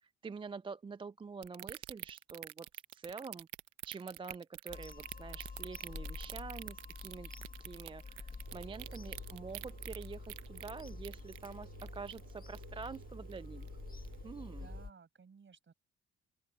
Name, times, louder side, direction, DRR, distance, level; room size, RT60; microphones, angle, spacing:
voice 1, 0.0-2.7 2.9-3.5 3.8-7.3 7.6-13.7 14.2-14.7, right 5 dB, 20° right, 0.3 m, -47 dB
sound 1, 1.4-13.0 13.3-13.7 14.0-14.2, right 16 dB, 85° right, 0.7 m, -46 dB
Bird vocalization bird call bird song / Telephone, 4.7-14.9, left 4 dB, 30° left, 2.0 m, -48 dB
Engine, 8.4-14.9, right 9 dB, 65° right, 5.0 m, -54 dB
voice 2, 14.6-15.7, right 5 dB, 40° right, 5.7 m, -58 dB
open air
cardioid pair, 90°, 30 cm